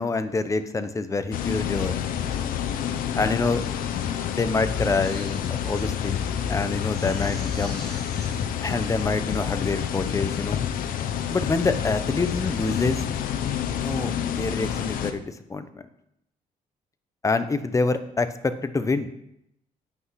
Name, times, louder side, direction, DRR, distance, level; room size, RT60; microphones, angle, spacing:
voice 1, 0.0-2.0 3.2-3.6 4.3-7.8 8.6-10.6 11.3-13.0 13.8-15.8 17.2-19.1, left 3 dB, 20° left, 10 dB, 0.9 m, -26 dB
sound 1, 1.3-15.1, left 9 dB, 85° left, 0.9 m, -29 dB
Computer keyboard, 3.7-13.2, left 10 dB, 55° left, 0.6 m, -35 dB
Crying sobbing, 5.0-5.9 6.3-6.4 6.8-8.4 9.0-9.1 9.4-9.9 10.4-10.8 11.2-11.6 12.0-12.8 13.2-13.5, equal, 5° left, 3.5 m, -46 dB
9.3 x 8.2 x 5.8 m, 0.78 s
cardioid pair, 115°, 14 cm